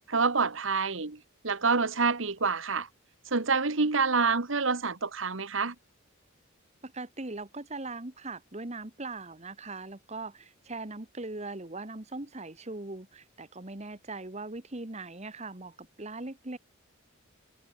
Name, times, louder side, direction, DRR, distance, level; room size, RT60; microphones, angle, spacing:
voice 1, 0.1-1.2 1.4-2.9 3.3-5.7, right 4 dB, 65° right, 1.4 m, -27 dB
voice 2, 6.8-16.6, right 2 dB, 30° right, 1.5 m, -40 dB
head